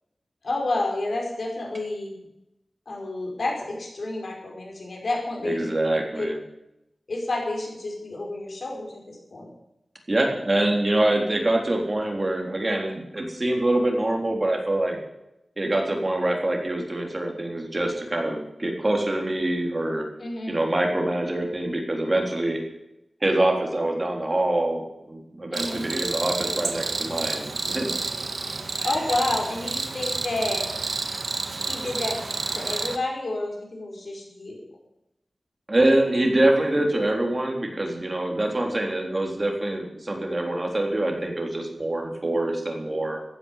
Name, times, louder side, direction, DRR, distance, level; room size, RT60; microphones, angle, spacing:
voice 1, 0.4-2.1 2.9-6.3 7.1-9.5 20.2-20.6 25.5-25.8 28.8-30.7 31.6-32.2 32.5-34.7, left 2 dB, 65° left, 0 dB, 5.2 m, -30 dB
voice 2, 5.4-6.4 10.1-15.0 15.6-20.0 20.5-22.6 23.2-27.9 35.7-43.2, right 1 dB, 30° right, 1 dB, 3.5 m, -25 dB
Cricket, 25.5-33.0, right 3 dB, 75° right, 1.5 m, -30 dB
15.0 x 10.0 x 7.3 m, 0.87 s
wide cardioid pair, 95°, 0 cm